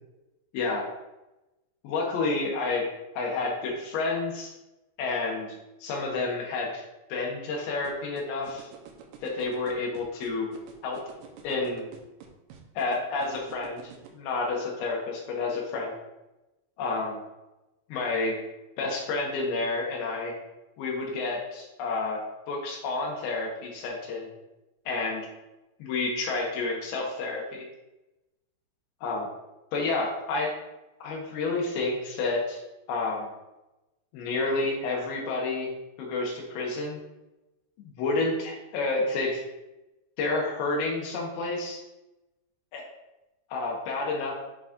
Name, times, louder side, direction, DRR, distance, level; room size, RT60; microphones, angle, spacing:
voice 1, 0.5-0.8 1.8-2.9 3.2-4.5 5.0-5.5 5.8-6.8 7.1-8.7 9.2-10.5 10.8-11.0 11.4-11.9 12.8-15.9 16.8-17.2 17.9-18.4 18.8-20.3 20.8-24.3 24.9-25.3 25.8-27.7 29.0-29.3 29.7-30.5 31.0-32.6 32.9-33.3 34.1-35.7 36.0-37.0 37.8-39.4 40.2-41.8 42.7-42.8 43.5-44.3, left 3 dB, 75° left, -1 dB, 2.4 m, -30 dB
sound 1, 7.8-14.1, right 10 dB, 85° right, 3.2 m, -46 dB
9.6 x 4.1 x 2.4 m, 0.99 s
omnidirectional pair, 5.7 m